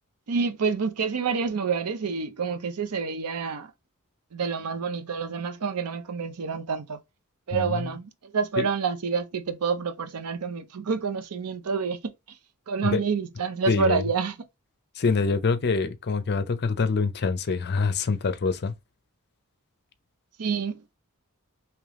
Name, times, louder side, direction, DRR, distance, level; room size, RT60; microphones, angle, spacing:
voice 1, 0.3-3.7 4.3-7.0 7.5-12.1 12.7-14.4 20.4-20.8, right 5 dB, 90° right, 0.6 m, -28 dB
voice 2, 7.5-8.0 8.6-8.7 12.8-13.0 13.7-14.0 15.0-18.7, left 4 dB, 50° left, 0.5 m, -25 dB
3.3 x 3.0 x 3.6 m
head